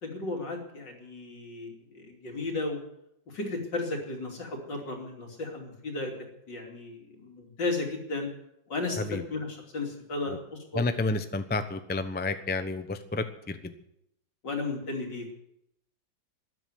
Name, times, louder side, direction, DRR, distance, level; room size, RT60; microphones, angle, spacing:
voice 1, 0.0-2.8 3.3-8.3 8.7-10.8 14.4-15.3, left 3 dB, 65° left, 2 dB, 3.6 m, -34 dB
voice 2, 10.7-13.7, left 3 dB, 10° left, 9 dB, 0.4 m, -30 dB
13.0 x 11.0 x 9.4 m, 0.79 s
omnidirectional pair, 2.1 m